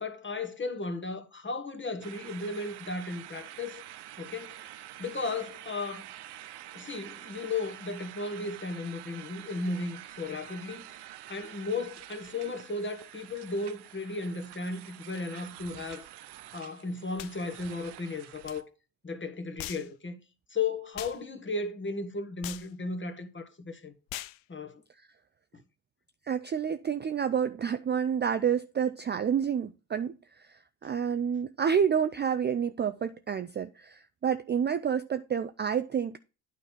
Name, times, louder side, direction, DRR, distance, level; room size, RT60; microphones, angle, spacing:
voice 1, 0.0-3.8 4.2-4.7 5.0-6.1 6.7-16.1 16.5-18.7 19.0-20.2 20.5-23.9 24.5-24.8, left 3 dB, 25° left, 1.5 m, -35 dB
sound 1, 2.0-18.6, right 13 dB, 55° right, 0.7 m, -47 dB
sound 2, 17.2-17.4 18.5-18.6 19.6-19.9 21.0-21.2 22.4-22.7 24.1-24.4, left 16 dB, 70° left, 0.6 m, -40 dB
voice 2, 26.3-30.2 30.5-36.2, right 7 dB, 25° right, 0.4 m, -29 dB
9.1 x 4.0 x 5.8 m
hypercardioid pair, 60°, 48 cm